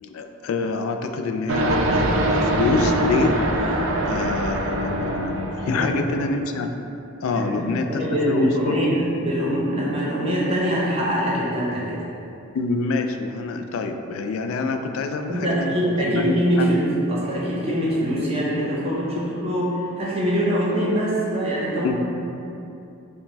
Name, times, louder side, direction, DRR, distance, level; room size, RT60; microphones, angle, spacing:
voice 1, 0.0-6.8 7.2-8.8 12.5-16.7 21.8-22.0, left 3 dB, 75° left, 6 dB, 0.3 m, -26 dB
sound 1, 1.5-6.2, right 1 dB, 65° right, 0.4 m, -23 dB
voice 2, 7.3-12.0 15.3-16.8 17.1-21.9, equal, 30° right, -6 dB, 0.8 m, -23 dB
5.7 x 2.1 x 3.2 m, 2.7 s
head